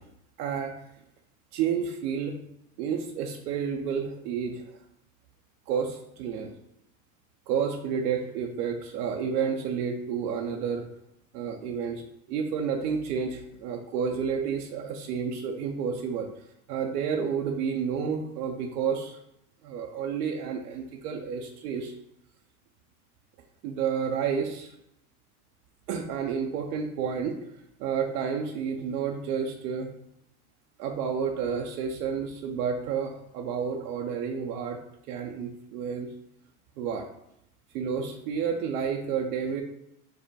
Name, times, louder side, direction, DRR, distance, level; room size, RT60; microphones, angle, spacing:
voice 1, 0.4-0.7 1.5-2.4 2.8-4.6 5.7-6.5 7.5-10.9 11.3-12.0 12.3-16.3 16.7-19.2 19.6-21.9 23.6-24.7 25.9-27.4 27.8-29.9 30.8-34.8 35.1-36.1 36.8-37.1 37.7-39.6, right 6 dB, 85° right, 2 dB, 0.7 m, -30 dB
4.9 x 2.2 x 4.7 m, 0.79 s
supercardioid pair, 110°, 45 cm